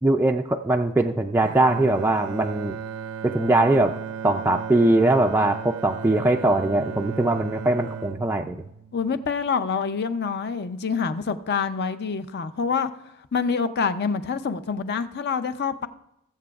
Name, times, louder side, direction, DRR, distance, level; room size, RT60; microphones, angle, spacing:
voice 1, 0.0-2.8 3.2-3.9 4.2-8.6, right 2 dB, 10° right, 0.3 m, -21 dB
Bowed string instrument, 1.4-9.6, right 7 dB, 70° right, 0.5 m, -35 dB
voice 2, 8.9-12.9 13.3-15.9, left 5 dB, 50° left, 0.5 m, -26 dB
19.5 x 7.6 x 2.4 m
head